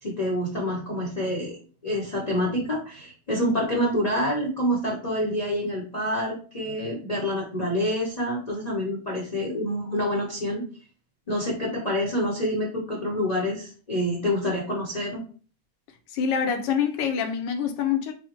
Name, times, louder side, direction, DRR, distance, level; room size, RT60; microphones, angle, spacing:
voice 1, 0.0-1.6 1.8-10.6 11.3-15.2, equal, 45° left, 0.5 m, -27 dB
voice 2, 16.1-18.1, left 7 dB, 75° left, 1.2 m, -25 dB
5.3 x 2.1 x 2.9 m
omnidirectional pair, 2.2 m